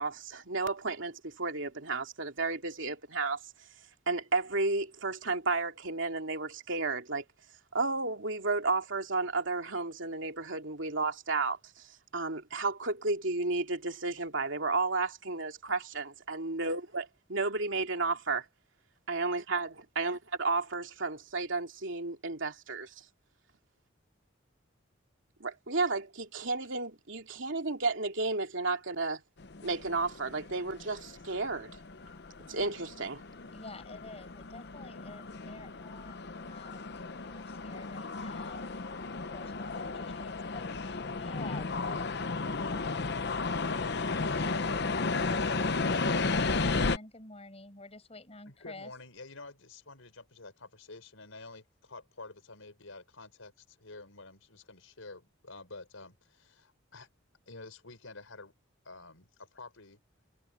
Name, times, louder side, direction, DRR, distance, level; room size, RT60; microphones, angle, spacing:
voice 1, 0.0-3.4 4.1-7.2 7.7-18.4 19.1-22.9 25.4-29.2 29.6-31.7 32.5-33.2, right 3 dB, 70° right, 2.8 m, -32 dB
sound 1, 29.4-47.0, left 3 dB, 55° left, 0.9 m, -34 dB
voice 2, 33.5-43.6 46.5-48.9, left 2 dB, 30° left, 5.3 m, -50 dB
voice 3, 48.5-57.1 57.5-58.5 58.9-60.0, left 3 dB, 90° left, 5.6 m, -49 dB
head